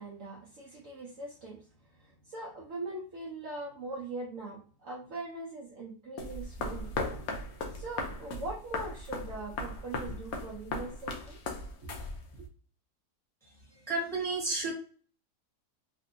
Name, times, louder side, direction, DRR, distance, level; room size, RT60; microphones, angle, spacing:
voice 1, 0.0-1.7 2.0-7.0 7.7-11.4 11.8-12.1, right 2 dB, 60° right, -4 dB, 1.0 m, -41 dB
sound 1, 6.2-12.5, left 3 dB, 70° left, 1.1 m, -38 dB
voice 2, 13.9-14.7, right 3 dB, ahead, -5 dB, 1.4 m, -31 dB
3.6 x 2.6 x 2.5 m, 0.41 s
omnidirectional pair, 1.7 m